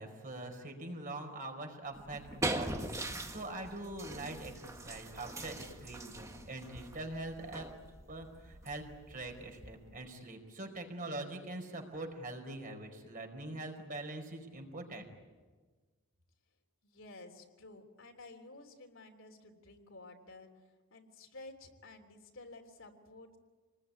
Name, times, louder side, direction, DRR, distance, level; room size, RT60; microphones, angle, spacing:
voice 1, 0.0-7.7 8.1-15.1, right 2 dB, 40° right, 3 dB, 4.7 m, -43 dB
sound 1, 1.9-10.0, right 2 dB, 15° right, 1.7 m, -42 dB
voice 2, 16.8-23.4, left 2 dB, 65° left, 4 dB, 3.4 m, -53 dB
28.5 x 20.5 x 9.8 m, 1.4 s
head